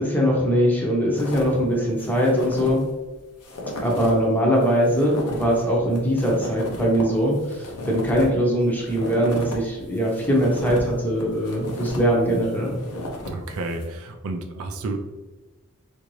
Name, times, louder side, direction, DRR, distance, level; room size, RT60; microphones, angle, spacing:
voice 1, 0.0-2.8 3.8-12.8, equal, 10° left, -2 dB, 0.7 m, -21 dB
sound 1, 1.2-1.6 2.0-2.8 3.1-3.2 3.4-4.2 4.6-9.6 9.9-13.9, left 1 dB, 90° left, 0.7 m, -35 dB
voice 2, 13.3-15.0, right 2 dB, 70° right, 5 dB, 0.4 m, -31 dB
3.7 x 2.6 x 3.1 m, 1.2 s
head